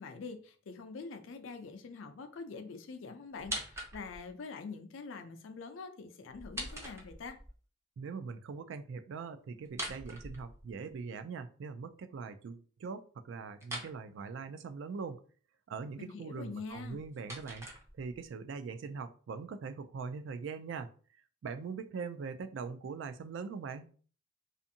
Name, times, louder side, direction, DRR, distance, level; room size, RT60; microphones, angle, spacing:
voice 1, 0.0-7.4 16.0-17.0, left 4 dB, 85° left, 0.4 m, -45 dB
sound 1, 3.4-4.3 6.3-7.5 9.6-11.0 13.6-14.0 16.7-18.3, right 1 dB, 15° right, 0.5 m, -43 dB
voice 2, 8.0-15.2 15.7-17.7 17.9-20.9 21.4-23.9, right 5 dB, 70° right, 0.3 m, -42 dB
2.5 x 2.5 x 2.6 m
head